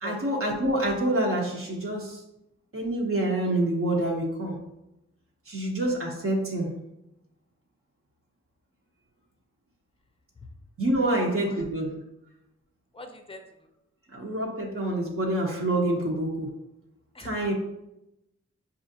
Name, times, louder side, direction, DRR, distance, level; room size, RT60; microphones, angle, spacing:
voice 1, 0.0-2.2 2.7-4.6 5.5-6.7 10.8-11.9 14.1-16.5 17.2-17.5, right 1 dB, 50° right, -2 dB, 0.8 m, -27 dB
voice 2, 11.0-11.6 12.9-13.4 17.1-17.5, left 2 dB, 20° left, 6 dB, 0.5 m, -43 dB
5.4 x 2.5 x 2.7 m, 0.87 s
wide cardioid pair, 80°, 29 cm